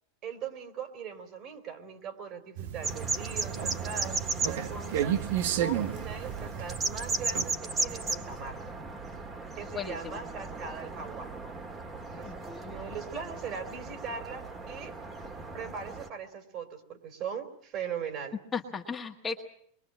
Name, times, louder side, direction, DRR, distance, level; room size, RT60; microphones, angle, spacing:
voice 1, 0.2-8.6 9.6-11.3 12.1-12.3 12.6-14.9 15.5-18.4, right 6 dB, 40° right, 9 dB, 3.3 m, -40 dB
sound 1, 2.6-7.6, right 10 dB, 70° right, 1.4 m, -33 dB
sound 2, 2.8-16.1, right 3 dB, 20° right, 1.8 m, -36 dB
voice 2, 9.7-10.2 12.2-12.8 18.5-19.4, left 5 dB, 15° left, 1 dB, 1.5 m, -36 dB
24.5 x 22.5 x 7.5 m, 0.63 s
supercardioid pair, 145°, 0 cm